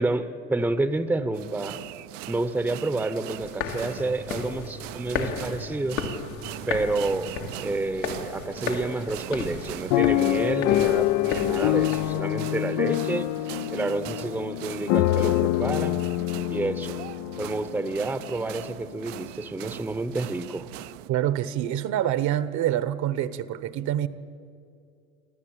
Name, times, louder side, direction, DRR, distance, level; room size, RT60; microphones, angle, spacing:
voice 1, 0.0-1.8 2.3-6.0 6.7-7.3 7.6-13.3 13.7-16.0 16.5-17.0 17.4-20.7, right 2 dB, 5° right, 0.8 m, -29 dB
sound 1, 1.3-21.1, right 16 dB, 65° right, 0.7 m, -41 dB
sound 2, 3.4-12.2, left 6 dB, 80° left, 2.3 m, -35 dB
sound 3, 9.9-18.0 18.6-18.7 19.0-19.2, left 16 dB, 45° left, 0.5 m, -25 dB
voice 2, 21.1-24.1, right 11 dB, 45° right, 1.0 m, -26 dB
25.0 x 14.0 x 8.8 m
hypercardioid pair, 100°, 40 cm